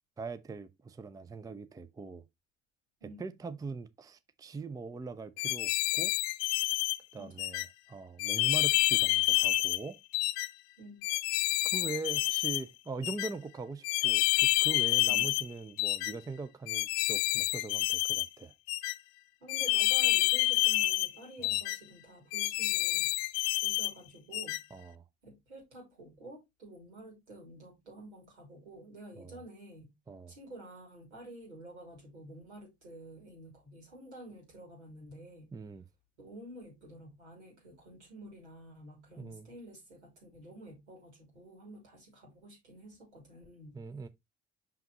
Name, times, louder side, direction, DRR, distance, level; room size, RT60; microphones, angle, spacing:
voice 1, 0.2-2.2 3.2-6.1 7.1-10.0 11.7-18.5 21.4-21.6 24.7-25.0 29.2-29.4 30.1-30.3 35.5-35.8 39.2-39.5 43.7-44.1, right 4 dB, 10° right, 0.5 m, -41 dB
voice 2, 3.0-3.3 7.2-7.5 10.8-11.1 15.1-15.3 19.4-23.1 23.6-24.6 25.2-29.9 30.3-35.5 36.2-43.8, right 1 dB, 80° right, 2.8 m, -50 dB
sound 1, 5.4-7.0 7.4-7.7 8.2-9.8 10.1-10.5 11.0-12.6 13.0-13.3 13.8-15.5 15.8-16.1 16.7-18.3 18.7-19.0 19.5-21.1 21.4-21.8 22.3-23.9 24.3-24.6, left 19 dB, 65° left, 0.5 m, -28 dB
5.9 x 5.7 x 2.8 m
figure-of-eight pair, 55°, 34 cm